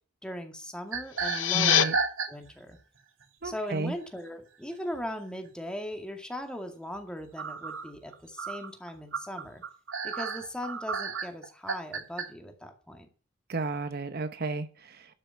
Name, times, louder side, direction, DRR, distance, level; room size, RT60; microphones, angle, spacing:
voice 1, 0.2-1.9 2.3-2.8 3.4-9.6 10.0-13.1, equal, 5° left, 4 dB, 2.1 m, -39 dB
sound 1, 0.9-2.7 3.2-3.5 4.9-5.0 5.5-5.6 7.4-12.3, right 5 dB, 85° right, 2.0 m, -32 dB
sound 2, 1.0-1.8, left 11 dB, 80° left, 0.8 m, -25 dB
voice 2, 1.5-1.9 3.4-3.9 13.5-15.0, right 3 dB, 50° right, 10 dB, 0.9 m, -32 dB
12.5 x 6.9 x 7.0 m, 0.39 s
head